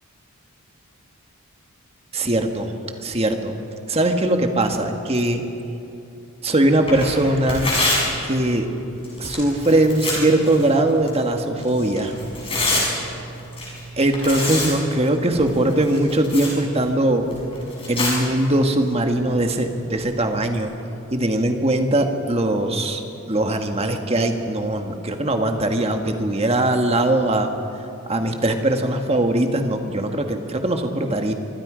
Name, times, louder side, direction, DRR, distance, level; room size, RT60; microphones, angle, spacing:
voice 1, 2.1-2.7 3.0-3.5 3.9-5.4 6.4-7.7 8.2-8.7 9.2-12.1 14.0-17.3 17.9-20.7 21.1-27.5 28.1-31.3, right 1 dB, 25° right, 5 dB, 1.5 m, -21 dB
Tearing, 6.8-20.6, left 1 dB, 25° left, 6.5 m, -29 dB
25.0 x 24.0 x 5.1 m, 2.8 s
head